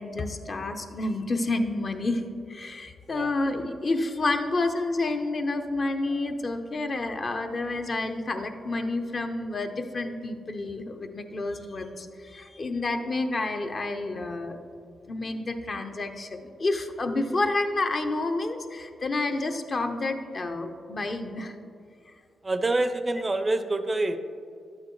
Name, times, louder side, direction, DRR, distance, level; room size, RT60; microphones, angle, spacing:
voice 1, 0.0-2.2 2.5-14.6 15.1-21.5, left 2 dB, 45° left, 6 dB, 0.7 m, -29 dB
voice 2, 22.4-24.2, right 2 dB, 25° right, 9 dB, 0.5 m, -26 dB
11.0 x 8.6 x 3.1 m, 2.4 s
cardioid pair, 85°, 0 cm